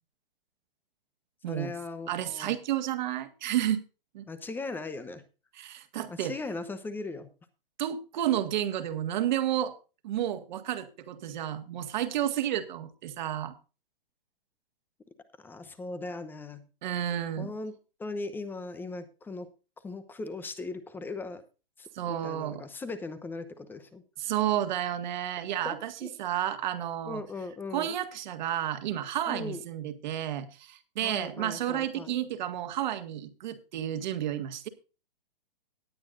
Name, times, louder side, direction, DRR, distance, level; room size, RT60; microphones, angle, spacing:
voice 1, 1.5-2.5 4.3-5.2 6.1-7.3 15.4-16.7 17.4-19.5 19.8-21.4 21.8-24.0 25.6-26.1 27.1-28.0 29.3-29.6 31.0-32.1, left 3 dB, 5° left, 12 dB, 0.8 m, -39 dB
voice 2, 2.1-3.8 4.1-4.3 5.5-6.4 7.8-9.7 10.0-13.5 16.8-17.5 21.9-22.7 24.2-27.2 27.7-34.7, right 11 dB, 50° right, 9 dB, 1.8 m, -31 dB
18.5 x 8.9 x 2.6 m, 0.32 s
hypercardioid pair, 140°, 30 cm